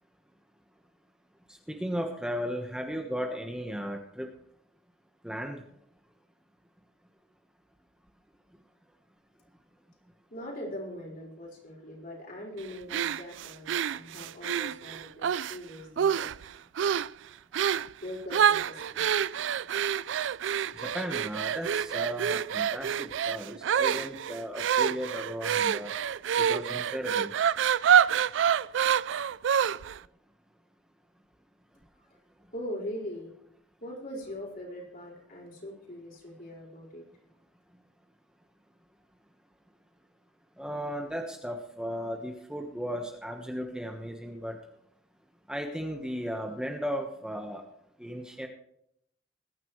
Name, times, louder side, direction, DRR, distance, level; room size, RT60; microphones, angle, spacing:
voice 1, 1.5-4.3 5.2-5.6 20.7-25.9 26.4-27.3 40.6-44.6 45.5-47.6 48.0-48.5, equal, 5° right, 2 dB, 1.2 m, -35 dB
voice 2, 10.3-16.1 18.0-19.2 32.5-33.3 33.8-37.0, equal, 50° left, -3 dB, 4.8 m, -41 dB
sound 1, 12.9-15.6 16.0-16.4 16.8-17.1 17.5-17.9 18.3-30.0, right 8 dB, 75° right, 0.4 m, -27 dB
21.5 x 10.0 x 3.2 m, 0.74 s
head